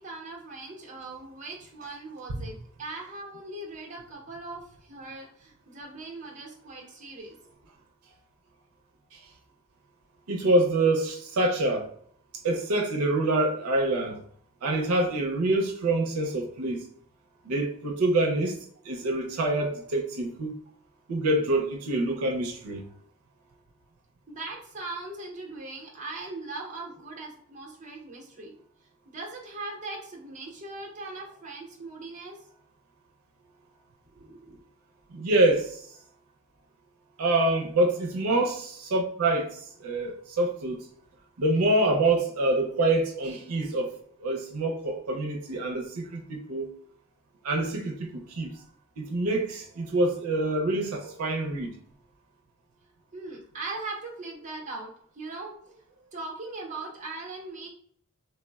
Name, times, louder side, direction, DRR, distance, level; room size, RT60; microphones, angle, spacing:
voice 1, 0.0-7.3 24.3-28.5 29.1-32.4 34.1-34.6 35.1-35.3 53.1-57.7, right 2 dB, 35° right, -1 dB, 0.7 m, -40 dB
voice 2, 10.3-11.8 12.4-14.2 14.6-16.9 17.4-18.6 18.8-20.5 21.1-22.9 35.1-35.9 37.2-40.9 41.4-43.9 44.2-46.7 47.4-48.6 49.0-51.7, right 2 dB, 90° right, 1 dB, 0.5 m, -26 dB
3.2 x 2.0 x 2.2 m, 0.63 s
head